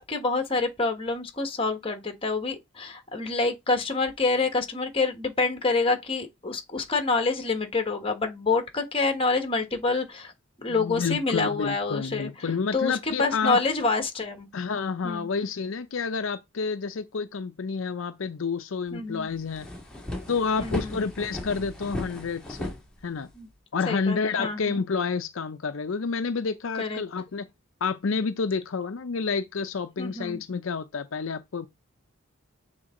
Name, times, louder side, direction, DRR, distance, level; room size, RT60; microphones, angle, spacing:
voice 1, 0.0-10.3 10.6-14.5 15.0-15.3 18.9-19.3 20.6-21.0 23.3-23.5 23.9-24.8 26.8-27.0 30.0-30.4, left 3 dB, 25° left, 1.4 m, -27 dB
voice 2, 10.7-13.6 14.5-19.7 20.3-22.7 23.0-23.3 23.7-27.5 27.8-31.7, left 5 dB, 75° left, 0.6 m, -29 dB
sound 1, 18.9-19.0 19.3-23.5, left 1 dB, 5° left, 2.0 m, -36 dB
8.0 x 3.8 x 3.8 m
head